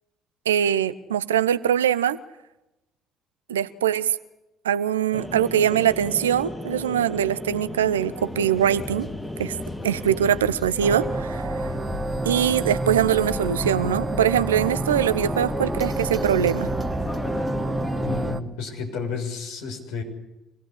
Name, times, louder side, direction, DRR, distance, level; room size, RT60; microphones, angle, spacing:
voice 1, 0.5-2.2 3.5-4.2 4.6-9.1 9.4-9.6 9.8-11.5 12.2-16.7, right 9 dB, 85° right, 15 dB, 0.8 m, -22 dB
sound 1, 5.1-10.5, equal, 5° left, 2.6 m, -36 dB
sound 2, 7.8-18.4, left 3 dB, 30° left, 2.8 m, -33 dB
sound 3, 10.8-18.4, right 3 dB, 25° right, 1.6 m, -29 dB
voice 2, 18.0-20.0, left 5 dB, 70° left, 1 dB, 6.4 m, -31 dB
26.0 x 19.0 x 8.5 m, 0.96 s
hypercardioid pair, 50°, 0 cm